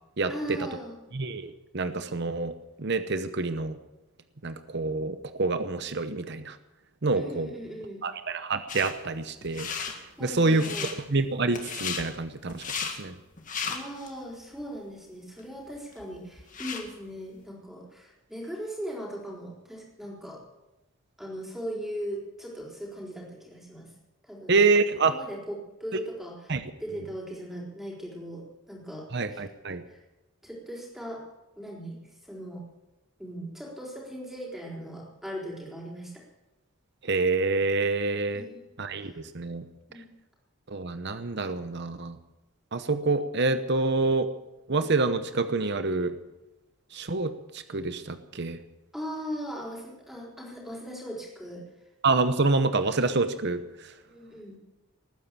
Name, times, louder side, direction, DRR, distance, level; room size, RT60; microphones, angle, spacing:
voice 1, 0.3-1.0 7.2-8.0 10.2-10.9 13.7-20.4 21.2-23.9 24.2-24.6 25.0-26.5 26.8-29.4 29.8-30.0 30.4-31.2 31.6-32.6 33.2-36.1 38.3-38.6 39.0-39.2 39.9-40.1 48.9-51.6 54.1-54.6, equal, ahead, -2 dB, 3.9 m, -39 dB
voice 2, 1.1-2.5 2.8-3.8 4.4-6.5 7.0-7.5 8.0-9.7 10.2-10.7 11.1-12.6 13.0-13.1 24.5-25.1 26.5-26.6 29.1-29.8 37.1-38.4 38.8-39.6 40.7-42.2 42.7-44.3 44.7-46.1 46.9-47.3 47.7-48.6 52.0-53.6, right 3 dB, 50° right, 10 dB, 0.9 m, -27 dB
sound 1, 8.7-8.9 9.4-10.0 10.5-10.9 11.5-12.0 12.5-13.0 13.4-14.1 14.6-14.7 15.4-15.5 15.7-16.9, left 6 dB, 35° left, 1.9 m, -34 dB
19.5 x 9.4 x 7.5 m, 1.0 s
head